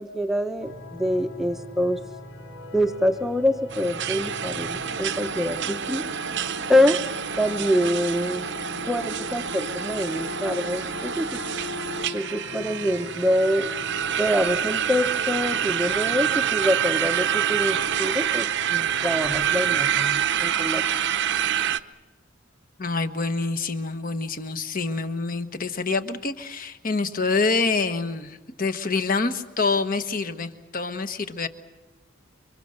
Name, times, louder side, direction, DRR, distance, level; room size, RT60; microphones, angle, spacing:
voice 1, 0.0-2.0 2.7-6.0 6.7-7.0 7.4-8.5 8.9-11.4 12.1-13.7 14.2-20.8, equal, ahead, 6 dB, 0.8 m, -25 dB
sound 1, 0.6-19.8, left 3 dB, 75° left, 2.7 m, -41 dB
sound 2, 3.7-21.8, right 9 dB, 60° right, 0.8 m, -27 dB
voice 2, 22.8-31.5, left 4 dB, 45° left, 9 dB, 1.3 m, -26 dB
29.0 x 24.5 x 6.5 m, 1.1 s
head